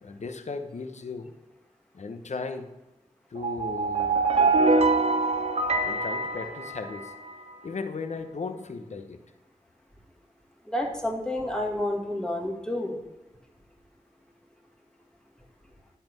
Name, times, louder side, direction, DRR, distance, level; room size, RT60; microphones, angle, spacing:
voice 1, 0.0-1.3 1.9-2.7 3.3-4.6 5.8-7.1 7.6-9.2, left 4 dB, 65° left, 8 dB, 1.0 m, -36 dB
sound 1, 3.4-7.3, right 3 dB, 55° right, 0.8 m, -24 dB
voice 2, 10.7-13.0, left 1 dB, 5° left, 0 dB, 2.0 m, -29 dB
11.0 x 4.3 x 5.4 m, 1.0 s
cardioid pair, 40°, 13 cm